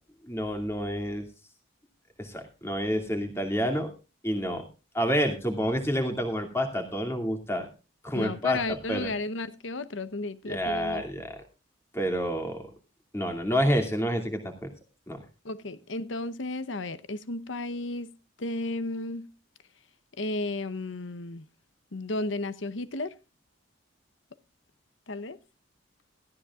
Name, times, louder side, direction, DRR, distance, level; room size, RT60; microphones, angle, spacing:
voice 1, 0.3-1.2 2.2-3.9 4.2-4.6 4.9-7.7 8.0-9.1 10.4-11.4 11.9-12.7 13.1-14.7 15.1-15.2, equal, 15° left, 2.5 m, -28 dB
voice 2, 8.1-11.0 15.4-18.1 18.4-19.3 20.2-21.4 21.9-23.1 25.1-25.4, left 2 dB, 75° left, 0.9 m, -33 dB
17.0 x 15.0 x 2.4 m
head